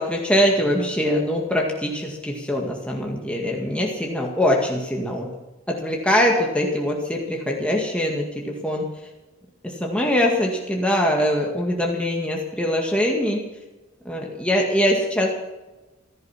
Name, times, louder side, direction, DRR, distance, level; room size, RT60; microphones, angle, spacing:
voice 1, 0.0-5.3 5.7-8.9 9.6-13.4 14.1-15.3, equal, 5° left, -1 dB, 2.0 m, -23 dB
16.0 x 14.0 x 5.8 m, 1.1 s
head